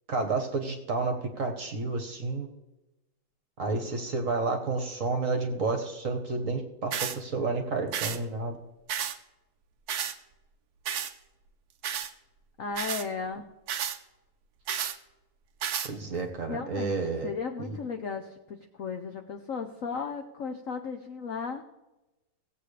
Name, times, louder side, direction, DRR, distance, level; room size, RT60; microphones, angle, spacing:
voice 1, 0.1-2.5 3.6-8.6 15.9-17.3 17.6-17.8, right 3 dB, 45° right, 5 dB, 1.4 m, -30 dB
sound 1, 6.9-7.2 7.9-8.2 8.9-9.2 9.9-10.1 10.9-11.1 11.8-12.1 12.7-13.1 13.7-14.0 14.7-15.0 15.6-15.9, right 9 dB, 65° right, 1.0 m, -31 dB
voice 2, 12.6-13.4 16.5-21.6, left 5 dB, 65° left, 6 dB, 0.8 m, -35 dB
17.5 x 8.1 x 3.3 m, 1.0 s
omnidirectional pair, 2.4 m